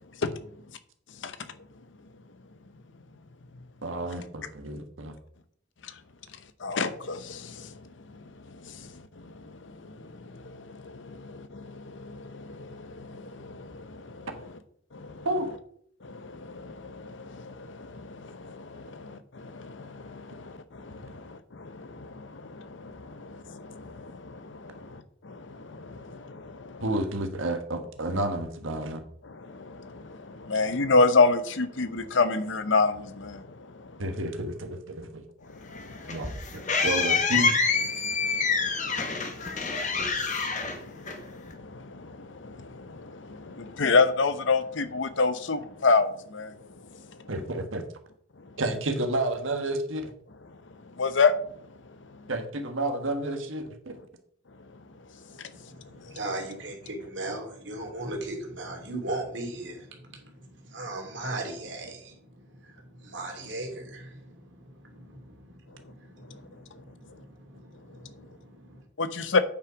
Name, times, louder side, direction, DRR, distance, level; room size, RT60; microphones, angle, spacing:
voice 1, 3.8-5.1 15.2-15.5 26.8-29.0 34.0-35.2 36.1-37.6 47.3-47.8 48.6-50.1 52.3-54.0, right 1 dB, 85° right, 7 dB, 1.4 m, -30 dB
voice 2, 6.6-7.6 10.4-14.3 14.9-15.3 16.0-25.0 25.2-26.8 29.4-33.4 38.0-39.7 40.1-46.5 51.0-51.3 69.0-69.4, left 4 dB, 70° left, 11 dB, 0.8 m, -29 dB
sound 1, 35.7-41.5, left 4 dB, 40° left, 1.2 m, -27 dB
voice 3, 55.5-68.8, right 2 dB, 65° right, 1 dB, 2.7 m, -38 dB
8.8 x 5.7 x 5.0 m, 0.63 s
head